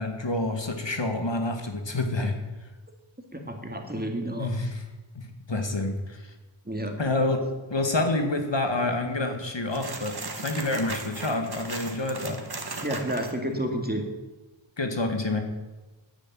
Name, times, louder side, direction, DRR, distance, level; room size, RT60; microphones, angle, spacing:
voice 1, 0.0-2.4 4.4-4.8 5.2-6.3 7.0-7.4 7.7-12.4 14.8-15.4, left 2 dB, 65° left, 5 dB, 2.1 m, -28 dB
voice 2, 3.3-4.5 6.7-7.0 12.8-14.0, right 1 dB, 20° right, 3 dB, 2.3 m, -30 dB
sound 1, 9.7-13.3, right 3 dB, 50° right, 1.8 m, -37 dB
10.0 x 9.9 x 9.2 m, 1.2 s
wide cardioid pair, 45°, 48 cm